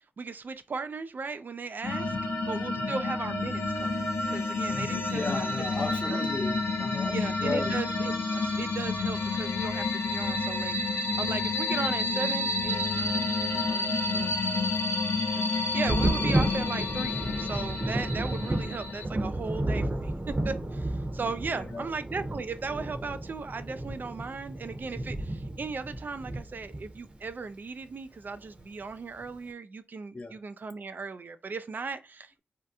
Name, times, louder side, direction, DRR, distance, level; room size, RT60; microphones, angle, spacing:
voice 1, 0.2-5.4 5.8-6.2 7.1-10.8 11.2-14.4 14.7-14.8 15.5-32.4, right 4 dB, 55° right, 0.3 m, -37 dB
sound 1, 1.8-19.1, left 3 dB, 85° left, 0.7 m, -29 dB
voice 2, 4.7-7.8 21.5-21.9 30.1-30.4, left 3 dB, 35° left, 0.6 m, -36 dB
Thunder, 15.9-27.3 28.6-28.7 29.2-29.3, right 1 dB, 30° right, 0.8 m, -32 dB
2.8 x 2.2 x 3.5 m
cardioid pair, 60°, 4 cm